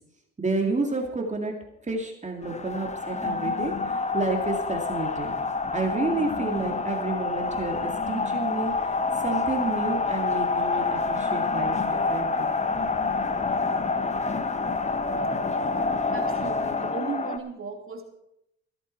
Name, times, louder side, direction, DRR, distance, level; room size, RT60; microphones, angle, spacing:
voice 1, 0.4-1.5 1.8-5.4 5.7-12.6, right 3 dB, 25° right, 1 dB, 2.4 m, -30 dB
sound 1, 2.4-17.4, left 4 dB, 25° left, 1.0 m, -27 dB
voice 2, 16.1-18.0, right 5 dB, 45° right, 2 dB, 3.0 m, -36 dB
15.5 x 13.0 x 4.7 m, 0.81 s
cardioid pair, 90°, 30 cm